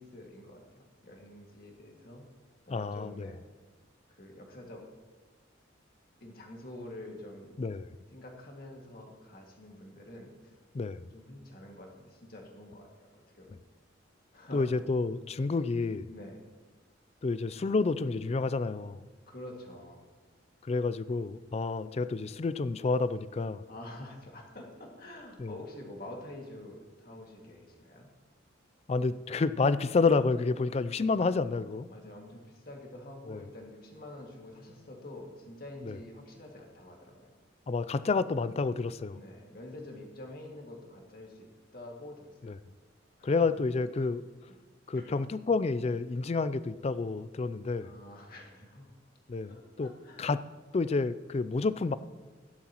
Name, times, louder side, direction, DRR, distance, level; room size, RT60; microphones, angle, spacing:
voice 1, 0.0-2.3 2.7-3.4 4.1-4.8 6.2-7.6 8.1-10.6 10.9-13.5 14.3-14.8 16.1-16.4 19.3-20.1 23.7-28.1 31.9-37.3 39.1-42.5 43.2-43.6 44.9-45.2 47.8-48.9 49.4-50.3, left 1 dB, 50° left, 0 dB, 2.1 m, -47 dB
voice 2, 2.7-3.3 7.6-7.9 10.7-11.0 14.5-16.1 17.2-19.0 20.6-23.6 25.4-25.5 28.9-31.9 33.3-33.4 35.9-36.0 37.7-39.2 42.4-42.5 43.2-44.2 44.9-47.9 49.3-49.9 50.2-50.4 50.7-52.0, left 4 dB, 35° left, 15 dB, 0.3 m, -29 dB
15.5 x 11.5 x 3.0 m, 1.4 s
head